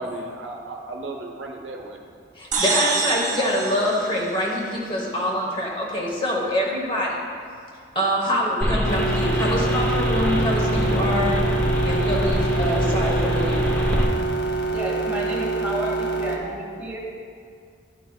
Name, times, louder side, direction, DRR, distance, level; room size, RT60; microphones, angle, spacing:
voice 1, 0.0-2.0, right 2 dB, 75° right, 1 dB, 0.8 m, -34 dB
voice 2, 2.4-7.2 7.9-11.4 11.8-13.7, equal, 25° left, -3 dB, 1.0 m, -25 dB
sound 1, 2.5-5.1, right 4 dB, 40° right, 0.6 m, -27 dB
sound 2, 8.6-14.0, equal, 10° left, 0.7 m, -24 dB
sound 3, 8.8-16.4, right 3 dB, 60° left, 0.7 m, -26 dB
voice 3, 14.4-17.0, right 1 dB, 10° right, -4 dB, 1.3 m, -31 dB
11.5 x 5.5 x 2.3 m, 2.2 s
head